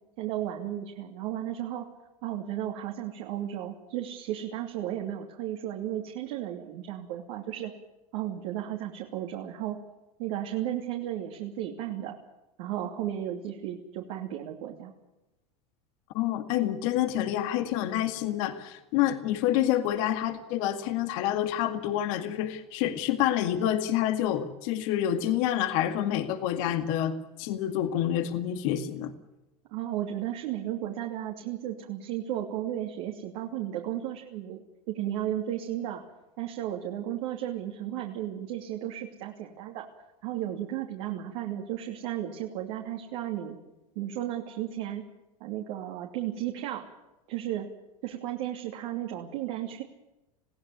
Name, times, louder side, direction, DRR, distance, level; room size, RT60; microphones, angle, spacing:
voice 1, 0.2-1.9 2.2-7.7 8.1-9.8 10.2-12.2 12.6-14.9 29.7-36.0 36.4-39.9 40.2-43.6 43.9-45.0 45.4-46.9 47.3-47.7 48.0-49.8, right 12 dB, 65° right, 0 dB, 3.0 m, -34 dB
voice 2, 16.1-29.1, left 11 dB, 65° left, 7 dB, 2.1 m, -28 dB
21.5 x 16.0 x 9.5 m, 0.99 s
hypercardioid pair, 110°, 19 cm